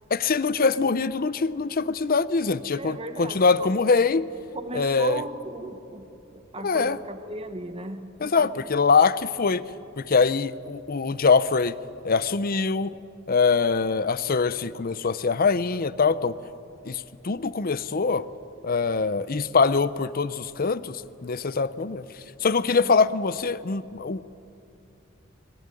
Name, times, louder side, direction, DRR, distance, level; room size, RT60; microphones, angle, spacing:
voice 1, 0.1-4.3 4.7-5.2 6.6-7.0 8.2-9.6 10.0-11.8 12.0-12.9 13.3-16.3 16.8-18.3 18.6-22.1 22.4-24.3, left 4 dB, 45° left, 16 dB, 0.6 m, -23 dB
voice 2, 2.8-3.8 4.6-8.6 22.8-22.9, right 2 dB, 30° right, 8 dB, 1.3 m, -36 dB
22.5 x 20.0 x 9.8 m, 2.8 s
head